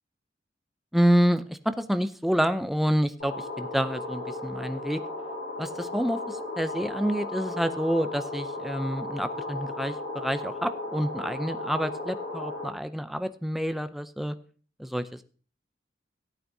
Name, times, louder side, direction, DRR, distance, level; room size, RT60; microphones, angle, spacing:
voice 1, 0.9-5.0 5.6-14.4 14.8-15.2, equal, ahead, 10 dB, 0.5 m, -28 dB
sound 1, 3.2-12.7, left 2 dB, 70° left, 6.1 m, -35 dB
17.0 x 8.8 x 2.7 m, 0.39 s
head